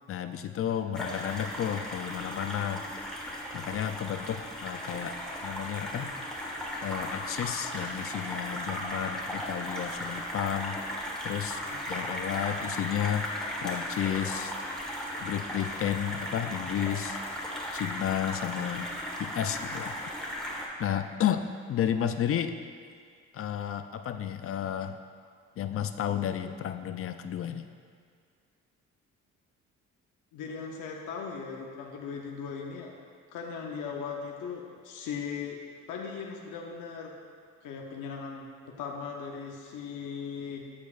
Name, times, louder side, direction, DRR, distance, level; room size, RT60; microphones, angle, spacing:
voice 1, 0.1-2.8 3.5-5.1 5.4-6.1 6.8-10.8 11.2-11.6 11.9-13.3 13.6-14.5 15.2-17.2 17.7-18.9 19.2-20.0 20.8-22.5 23.3-25.0 25.6-27.6, left 10 dB, 50° left, 9 dB, 0.5 m, -32 dB
sound 1, 0.9-20.6, equal, ahead, 1.4 m, -36 dB
voice 2, 30.3-32.9 33.3-35.6 35.9-37.1 37.6-40.7, left 6 dB, 85° left, 0 dB, 0.8 m, -38 dB
13.5 x 4.9 x 2.5 m, 2.1 s
cardioid pair, 90°, 30 cm